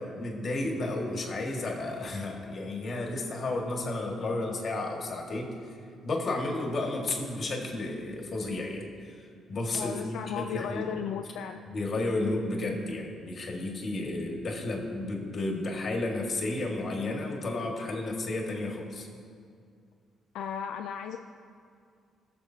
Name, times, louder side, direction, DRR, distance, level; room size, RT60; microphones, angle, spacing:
voice 1, 0.0-5.5 6.0-11.0 11.7-19.1, left 2 dB, 50° left, 0 dB, 1.8 m, -32 dB
voice 2, 9.8-11.6 20.3-21.2, left 7 dB, 85° left, 5 dB, 0.3 m, -35 dB
19.0 x 6.8 x 2.8 m, 2.2 s
cardioid pair, 90°, 0 cm